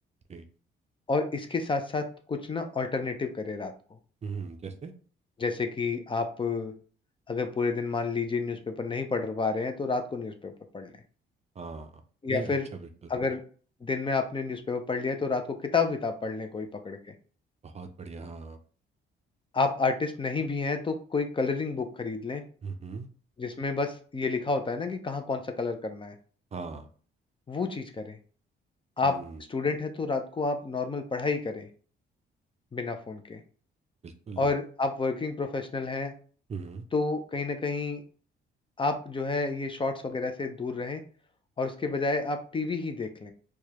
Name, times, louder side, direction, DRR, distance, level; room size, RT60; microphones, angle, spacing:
voice 1, 1.1-3.7 5.4-6.7 7.3-10.9 12.2-12.7 13.1-13.4 13.8-17.1 19.5-22.4 23.4-26.1 27.5-28.2 29.0-29.2 29.5-31.7 32.7-33.4 34.4-36.1 36.9-38.0 38.8-41.0 41.6-43.3, left 4 dB, 25° left, 6 dB, 0.6 m, -30 dB
voice 2, 4.2-4.9 11.6-12.0 12.3-13.1 17.6-18.6 22.6-23.1 26.5-26.9 29.0-29.4 34.0-34.5 36.5-36.9, right 4 dB, 35° right, 7 dB, 0.5 m, -39 dB
4.6 x 2.3 x 2.9 m, 0.42 s
cardioid pair, 90°, 20 cm